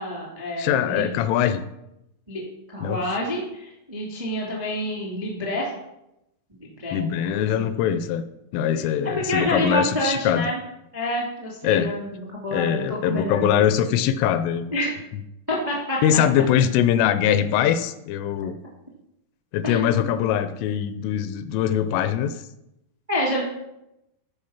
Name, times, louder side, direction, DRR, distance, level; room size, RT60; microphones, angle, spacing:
voice 1, 0.0-1.1 2.3-2.4 2.7-5.7 6.6-7.0 7.3-7.6 9.1-10.6 10.9-13.6 14.7-15.0 15.5-16.4 19.6-20.1 23.1-23.4, left 1 dB, 20° right, -3 dB, 0.8 m, -28 dB
voice 2, 0.6-1.6 2.8-3.0 6.9-8.2 8.5-10.5 11.6-11.9 12.5-14.7 16.0-18.5 19.5-22.4, left 9 dB, 85° left, 11 dB, 3.0 m, -22 dB
14.0 x 5.4 x 5.8 m, 0.87 s
omnidirectional pair, 5.8 m